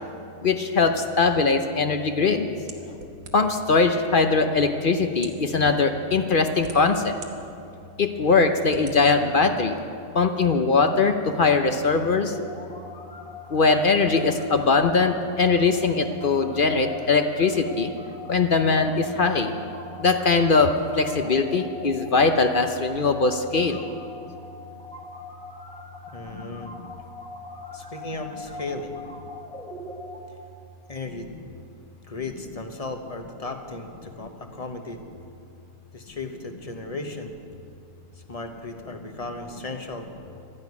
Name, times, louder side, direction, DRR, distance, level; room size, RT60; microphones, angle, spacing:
voice 1, 0.4-2.5 3.3-7.2 8.0-9.8 10.1-12.3 13.5-17.9 18.3-19.5 20.0-23.8 26.3-26.7, left 4 dB, 50° left, 7 dB, 0.7 m, -21 dB
sound 1, 2.7-3.7 4.5-4.6 5.1-5.5 6.2-7.3 7.8-7.9 8.7-9.0, right 4 dB, 65° right, 1.6 m, -43 dB
sound 2, 12.0-30.2, left 3 dB, 5° left, 1.5 m, -42 dB
voice 2, 26.1-26.7 27.7-29.0 30.9-31.3 32.0-35.0 35.9-37.3 38.2-40.1, left 2 dB, 25° left, 5 dB, 1.0 m, -35 dB
13.0 x 11.0 x 9.5 m, 2.6 s
omnidirectional pair, 1.6 m